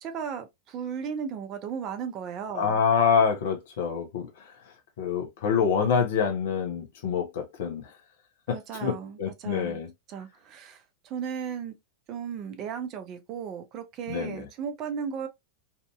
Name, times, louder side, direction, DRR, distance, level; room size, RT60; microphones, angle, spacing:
voice 1, 0.0-2.8 8.5-9.8 10.1-11.7 12.1-15.3, right 7 dB, 35° right, 0.5 m, -35 dB
voice 2, 2.5-4.3 5.0-7.8 8.5-9.9 14.1-14.4, left 6 dB, 55° left, 0.8 m, -26 dB
2.8 x 2.6 x 2.2 m
figure-of-eight pair, 90°, 0 cm